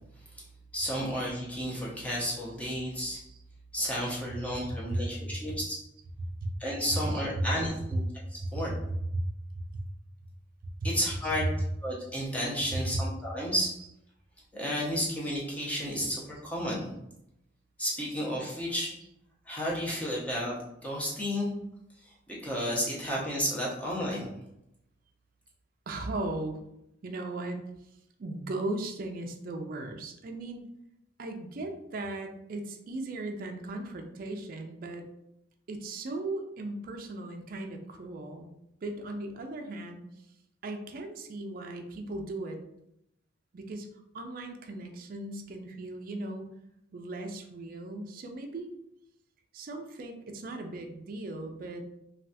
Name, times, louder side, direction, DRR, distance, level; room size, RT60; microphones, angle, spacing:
voice 1, 0.7-3.2 3.7-5.8 6.6-8.1 8.3-8.7 10.8-11.5 11.8-13.7 14.5-16.9 17.8-19.0 19.5-20.5 20.8-21.5 22.0-24.3, equal, 5° left, -5 dB, 0.7 m, -32 dB
voice 2, 7.1-7.4 8.4-8.8 9.1-9.2 9.5-9.8 12.7-13.0 25.9-26.6 27.0-27.6 28.2-30.7 31.2-35.0 35.7-38.5 38.8-40.0 40.6-42.6 43.5-43.9 44.1-46.5 46.9-48.7 49.5-51.9, right 2 dB, 45° right, 4 dB, 0.4 m, -37 dB
3.2 x 2.3 x 2.7 m, 0.81 s
head